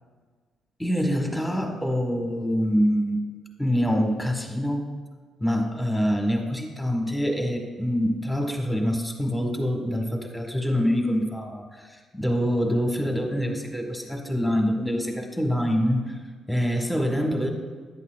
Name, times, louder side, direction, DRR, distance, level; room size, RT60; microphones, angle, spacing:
voice 1, 0.8-3.2 3.6-4.8 5.4-16.2 16.5-17.5, equal, 5° left, 3 dB, 1.3 m, -25 dB
11.0 x 8.3 x 2.4 m, 1.5 s
cardioid pair, 90°, 0 cm